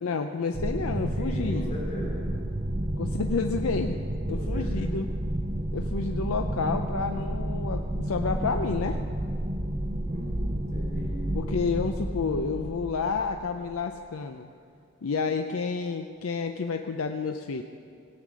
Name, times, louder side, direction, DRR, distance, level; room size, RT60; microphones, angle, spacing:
voice 1, 0.0-1.7 3.0-4.0 4.3-5.1 5.7-9.0 11.3-14.5 15.0-17.6, left 4 dB, 75° left, 5 dB, 0.5 m, -30 dB
sound 1, 0.5-13.8, right 1 dB, 30° right, 0.7 m, -31 dB
voice 2, 1.2-2.3 4.3-4.6 10.0-11.3, equal, 35° left, -4 dB, 3.1 m, -39 dB
18.0 x 8.4 x 6.2 m, 2.4 s
head